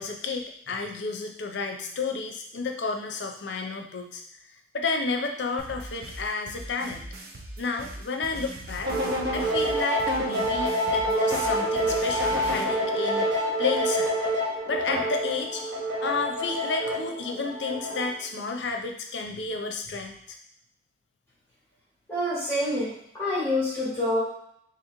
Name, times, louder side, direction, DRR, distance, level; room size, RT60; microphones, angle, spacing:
voice 1, 0.0-4.2 4.7-7.1 7.6-8.9 9.3-15.6 16.0-20.4, left 4 dB, 80° left, 3 dB, 0.5 m, -31 dB
sound 1, 5.6-12.6, right 1 dB, 55° right, 0.5 m, -41 dB
sound 2, 8.9-18.3, equal, 90° right, 0.9 m, -27 dB
voice 2, 22.1-24.2, left 1 dB, 15° left, -11 dB, 1.5 m, -27 dB
3.0 x 2.9 x 3.8 m, 0.71 s
head